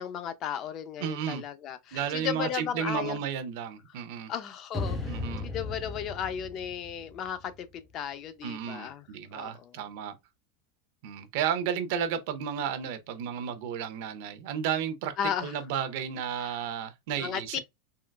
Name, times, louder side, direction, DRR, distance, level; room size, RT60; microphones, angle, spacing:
voice 1, 0.0-3.2 4.0-4.1 4.3-9.1 9.3-9.9 15.2-15.6 16.4-16.6 17.2-17.6, left 9 dB, 35° left, 0.4 m, -35 dB
voice 2, 1.0-1.4 1.9-4.3 5.1-5.5 8.4-10.1 11.0-15.1 15.4-17.6, right 8 dB, 60° right, 0.6 m, -33 dB
sound 1, 4.7-7.9, left 3 dB, 5° left, 0.8 m, -36 dB
3.7 x 2.3 x 2.2 m
supercardioid pair, 155°, 0 cm